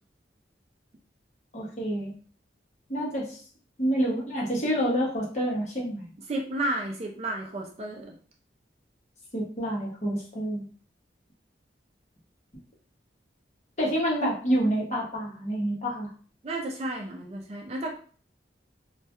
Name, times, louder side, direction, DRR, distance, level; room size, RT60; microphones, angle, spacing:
voice 1, 1.5-2.1 2.9-3.4 3.8-6.1 9.3-10.7 13.8-16.1, equal, 40° left, -4 dB, 0.8 m, -28 dB
voice 2, 6.3-8.1 16.4-18.0, right 1 dB, 35° right, 1 dB, 0.3 m, -32 dB
2.2 x 2.1 x 2.8 m, 0.42 s
head